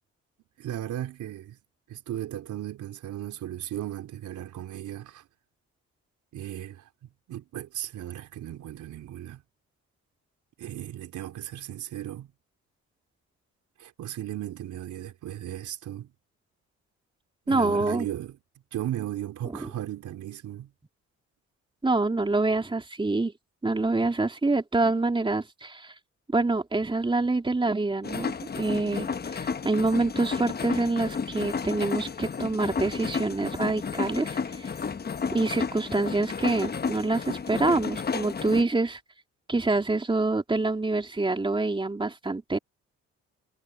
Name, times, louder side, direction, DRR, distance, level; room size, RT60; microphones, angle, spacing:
voice 1, 0.6-1.6 1.9-5.2 6.3-6.9 7.3-9.4 10.6-12.3 13.8-16.1 17.5-18.4 18.7-20.7, right 12 dB, 75° right, 3.9 m, -36 dB
voice 2, 17.5-18.1 19.5-19.7 21.8-23.3 23.6-25.9 26.3-34.7 35.3-39.0 39.5-42.6, right 3 dB, 15° right, 3.0 m, -26 dB
sound 1, 28.0-38.6, left 5 dB, 30° left, 1.2 m, -32 dB
cardioid pair, 90°, 30 cm